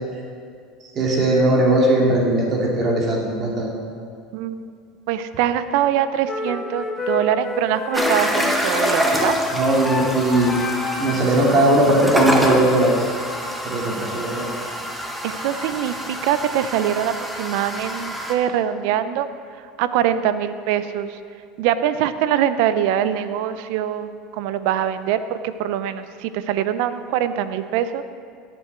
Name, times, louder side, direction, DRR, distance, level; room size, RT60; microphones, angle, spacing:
voice 1, 0.9-3.7 9.5-10.6 11.0-13.1 13.6-14.5, right 1 dB, 45° right, -3 dB, 3.3 m, -19 dB
voice 2, 4.3-4.6 5.1-9.4 15.2-19.3 19.8-21.2 21.6-24.1 24.4-28.0, right 10 dB, 70° right, 12 dB, 0.6 m, -23 dB
sound 1, 6.3-11.4, left 2 dB, 25° left, 1.5 m, -28 dB
sound 2, 7.9-18.3, equal, 5° right, 1.5 m, -26 dB
16.5 x 7.8 x 4.6 m, 2.2 s
hypercardioid pair, 90°, 0 cm